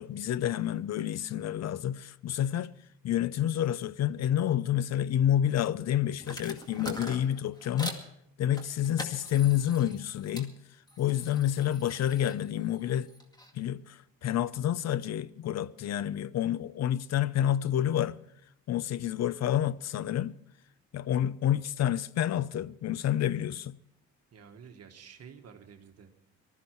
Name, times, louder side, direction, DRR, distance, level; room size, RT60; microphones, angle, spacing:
voice 1, 0.0-2.7 3.0-8.0 8.4-10.6 11.0-13.1 13.5-18.2 18.7-20.4 20.9-23.8, left 11 dB, 60° left, 0.6 m, -29 dB
sound 1, 6.2-8.1 8.5-10.5 10.9-13.5, equal, 15° left, 2.2 m, -43 dB
voice 2, 24.3-26.3, right 7 dB, 55° right, 1.5 m, -51 dB
19.0 x 13.5 x 4.5 m
cardioid pair, 90°, 30 cm